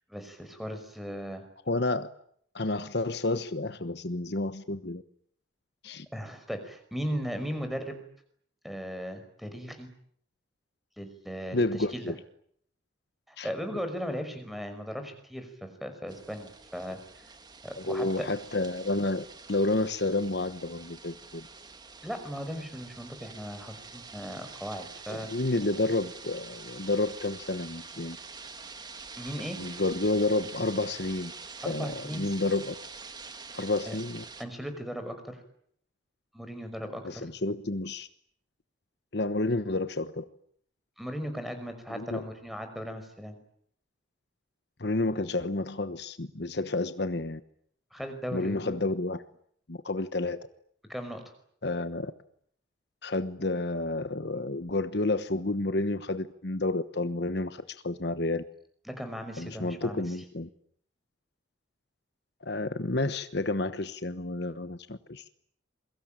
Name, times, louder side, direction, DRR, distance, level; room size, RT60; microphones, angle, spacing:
voice 1, 0.1-1.4 6.1-8.0 8.6-9.9 11.0-12.1 13.3-17.3 17.6-18.3 22.0-25.3 29.2-29.6 31.6-32.3 33.9-34.0 34.4-35.4 36.3-37.3 41.0-43.4 47.9-48.9 50.9-51.2 58.9-60.2, equal, ahead, 7 dB, 5.4 m, -37 dB
voice 2, 1.7-2.1 2.5-5.0 5.8-6.1 11.5-12.1 13.4-13.5 17.8-21.4 25.1-28.2 29.6-31.3 31.6-32.7 33.6-34.2 37.0-38.1 39.1-40.2 41.9-42.3 44.8-47.4 48.3-49.2 49.7-50.5 51.6-52.1 53.0-58.4 59.4-60.5 62.4-65.2, left 2 dB, 55° left, 11 dB, 1.1 m, -30 dB
sound 1, 16.1-34.4, right 4 dB, 20° right, 2.0 m, -46 dB
28.5 x 23.0 x 9.0 m, 0.66 s
head